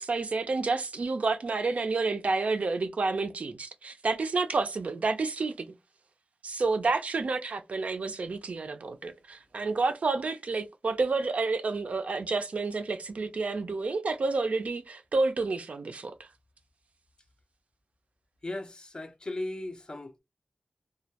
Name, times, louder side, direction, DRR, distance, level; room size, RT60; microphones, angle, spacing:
voice 1, 0.0-5.7 6.4-16.3, right 3 dB, 65° right, 0.4 m, -29 dB
voice 2, 18.4-20.2, left 2 dB, 35° left, 0.4 m, -37 dB
2.2 x 2.1 x 2.7 m
wide cardioid pair, 100°, 3 cm